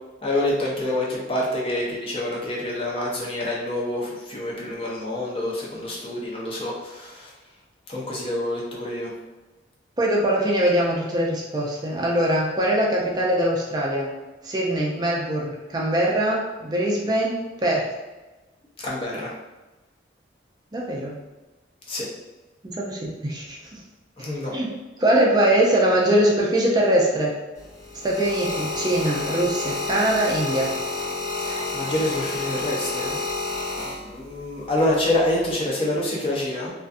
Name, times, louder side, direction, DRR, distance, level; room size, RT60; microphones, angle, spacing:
voice 1, 0.2-7.3 7.9-9.1 18.8-19.3 21.9-22.1 24.2-24.5 31.4-33.2 33.8-36.7, left 1 dB, 30° left, -4 dB, 0.6 m, -27 dB
voice 2, 10.0-14.1 14.4-17.9 20.7-21.1 22.6-23.8 24.5-24.7 25.0-27.4 28.0-30.7, right 1 dB, 20° right, -3 dB, 0.4 m, -22 dB
sound 1, 27.6-34.4 35.2-35.5, left 3 dB, 70° left, 1.4 m, -29 dB
2.5 x 2.4 x 2.4 m, 1.1 s
head